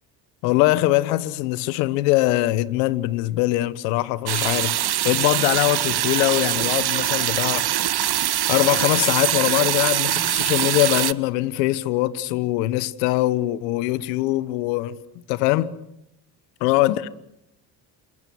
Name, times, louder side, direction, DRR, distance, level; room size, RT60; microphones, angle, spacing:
voice 1, 0.4-15.0 15.3-15.7 16.6-17.1, left 17 dB, 80° left, 1.2 m, -22 dB
sound 1, 4.3-11.1, right 12 dB, 50° right, 1.2 m, -23 dB
28.5 x 23.5 x 6.2 m
hypercardioid pair, 55°, 50 cm